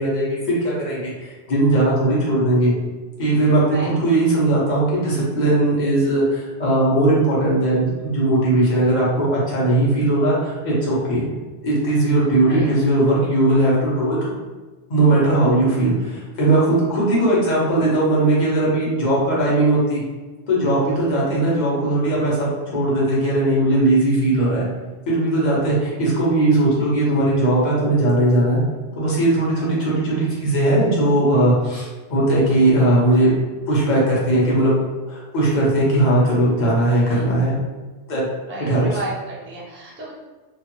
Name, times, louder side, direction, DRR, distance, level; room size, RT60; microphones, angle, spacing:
voice 1, 0.0-2.7 3.2-11.2 11.6-14.4 14.9-20.0 20.5-24.7 25.1-28.6 29.0-33.3 33.7-34.7 35.1-37.6 38.1-38.3 38.7-39.0, right 1 dB, 45° left, -6 dB, 0.9 m, -18 dB
voice 2, 21.2-21.6 29.7-29.8 37.0-37.3 38.5-40.1, right 1 dB, 15° right, -6 dB, 0.6 m, -33 dB
2.6 x 2.4 x 2.9 m, 1.3 s
omnidirectional pair, 1.2 m